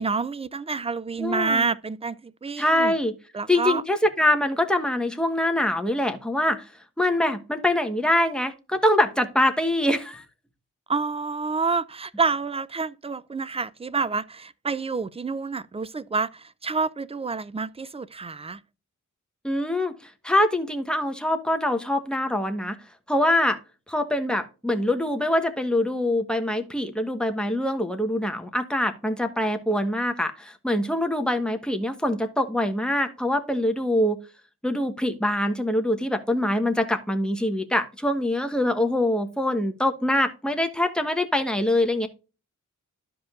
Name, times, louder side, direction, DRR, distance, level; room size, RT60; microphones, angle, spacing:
voice 1, 0.0-2.9 3.3-3.8 10.9-18.6, right 4 dB, 20° right, 0.4 m, -28 dB
voice 2, 1.2-1.7 2.6-3.1 3.5-6.6 7.0-10.2 19.4-22.8 23.1-23.6 23.9-34.2 34.6-42.1, left 1 dB, 5° left, 1.2 m, -24 dB
12.5 x 5.1 x 2.4 m
wide cardioid pair, 90°, 31 cm